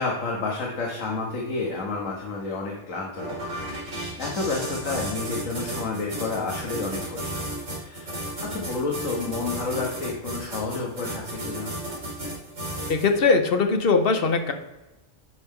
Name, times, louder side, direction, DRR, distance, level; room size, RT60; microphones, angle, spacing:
voice 1, 0.0-3.3 4.2-7.4 7.7-11.7, left 3 dB, 90° left, -2 dB, 1.6 m, -30 dB
sound 1, 3.1-13.2, right 1 dB, 85° right, 2.9 m, -33 dB
voice 2, 12.9-14.5, left 4 dB, 50° left, 6 dB, 1.0 m, -20 dB
10.5 x 4.5 x 3.6 m, 1.0 s
omnidirectional pair, 1.3 m